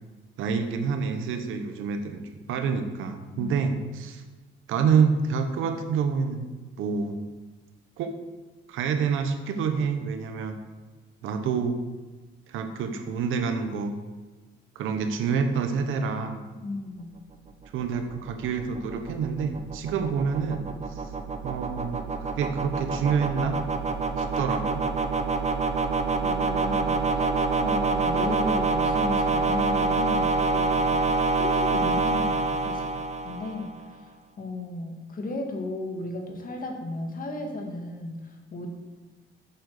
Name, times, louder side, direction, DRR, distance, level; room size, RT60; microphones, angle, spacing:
voice 1, 0.4-2.2 2.5-4.2 4.7-6.4 6.8-7.2 8.0-8.1 8.7-10.6 11.2-11.8 12.5-14.0 14.7-16.4 17.7-20.6 20.9-21.1 21.4-23.6 24.2-24.8, right 6 dB, 85° right, 7 dB, 1.1 m, -27 dB
voice 2, 16.6-17.2 26.2-32.9 33.2-38.7, left 2 dB, 45° left, 2 dB, 2.0 m, -35 dB
sound 1, 17.6-33.8, right 3 dB, 35° right, 0.9 m, -27 dB
8.0 x 6.1 x 6.6 m, 1.3 s
cardioid pair, 90°, 20 cm